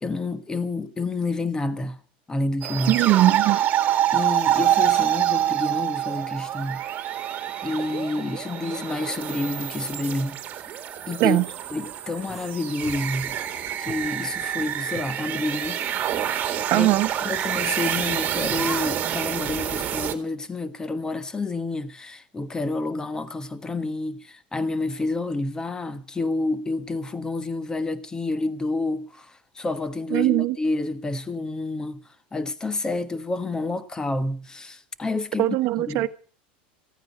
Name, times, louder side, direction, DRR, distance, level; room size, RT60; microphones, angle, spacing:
voice 1, 0.0-2.0 2.3-3.0 4.1-6.8 7.6-10.4 11.1-11.4 11.7-13.4 13.8-15.8 16.4-16.9 17.2-32.0 32.3-35.5 35.9-36.1, left 2 dB, 15° left, 1.4 m, -29 dB
sound 1, 2.6-20.1, right 11 dB, 35° right, 2.1 m, -26 dB
voice 2, 2.9-3.6 11.2-11.4 16.7-17.1 30.1-30.6 35.4-36.1, right 16 dB, 50° right, 1.2 m, -20 dB
sound 2, 12.3-13.5 13.9-14.1 14.6-15.1 15.6-16.1 16.4-16.8 17.4-17.8 18.5-19.2, right 1 dB, 5° right, 2.1 m, -40 dB
15.5 x 9.4 x 8.2 m
supercardioid pair, 115°, 5 cm